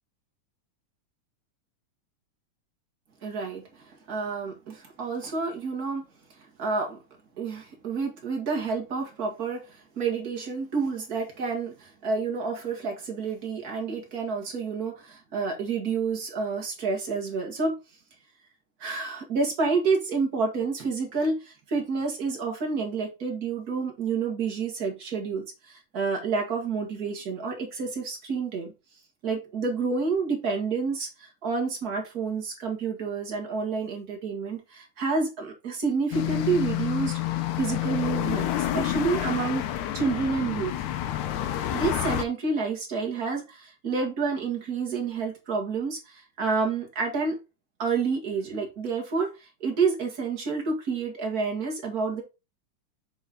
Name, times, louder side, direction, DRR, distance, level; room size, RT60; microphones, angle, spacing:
voice 1, 3.2-6.1 6.6-7.0 7.4-17.8 18.8-28.7 29.2-39.7 39.9-40.7 41.7-47.4 47.8-52.2, right 4 dB, 35° right, 1.7 m, -29 dB
sound 1, 36.1-42.3, left 13 dB, 75° left, 2.0 m, -29 dB
6.9 x 4.3 x 3.6 m
omnidirectional pair, 3.7 m